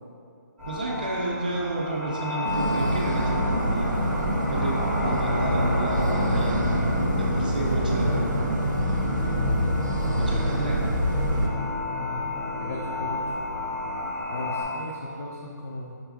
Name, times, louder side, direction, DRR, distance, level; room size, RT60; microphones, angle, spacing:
sound 1, 0.6-14.6, left 1 dB, 5° right, 0.8 m, -32 dB
voice 1, 0.7-4.1 4.5-8.3 9.2-9.7 10.0-10.8, right 1 dB, 25° right, -2 dB, 0.3 m, -30 dB
sound 2, 2.4-11.5, equal, 90° right, 0.7 m, -26 dB
voice 2, 12.6-13.4 14.3-16.0, left 2 dB, 55° left, -3 dB, 0.5 m, -36 dB
6.0 x 2.4 x 3.4 m, 2.5 s
hypercardioid pair, 175°, 10 cm